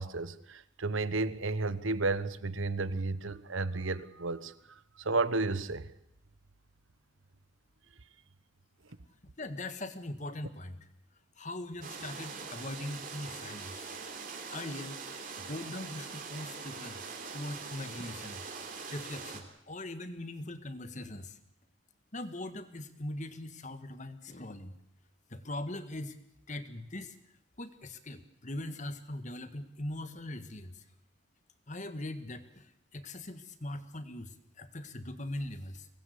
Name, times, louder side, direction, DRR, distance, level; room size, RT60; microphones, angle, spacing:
voice 1, 0.0-4.5 5.0-5.9, right 3 dB, 70° right, 15 dB, 1.2 m, -32 dB
voice 2, 9.4-10.8 11.4-13.9 14.5-17.0 17.3-18.4 18.9-21.4 22.1-24.7 25.3-26.2 26.5-27.2 27.6-30.8 31.7-35.9, left 1 dB, 35° left, 10 dB, 1.8 m, -41 dB
sound 1, 11.8-19.4, right 5 dB, 40° right, 3.5 m, -43 dB
24.5 x 20.0 x 8.5 m, 0.75 s
head